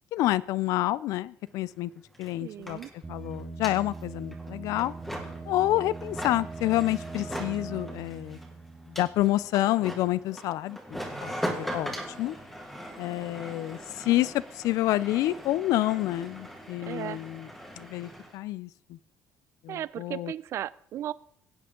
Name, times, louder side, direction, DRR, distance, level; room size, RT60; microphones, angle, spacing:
voice 1, 0.1-1.9 2.2-2.8 3.1-4.9 5.5-8.4 8.9-12.4 13.0-17.5 17.8-19.0 19.6-20.3, left 15 dB, 65° left, 20 dB, 0.4 m, -28 dB
sound 1, 1.5-1.6 1.7-18.4, equal, 5° left, 1.7 m, -40 dB
voice 2, 2.4-2.9 16.8-17.2 19.7-21.1, right 11 dB, 45° right, 18 dB, 0.4 m, -35 dB
sound 2, 3.0-9.6, right 4 dB, 15° right, 0.8 m, -41 dB
16.0 x 9.4 x 3.7 m, 0.66 s
cardioid pair, 175°, 6 cm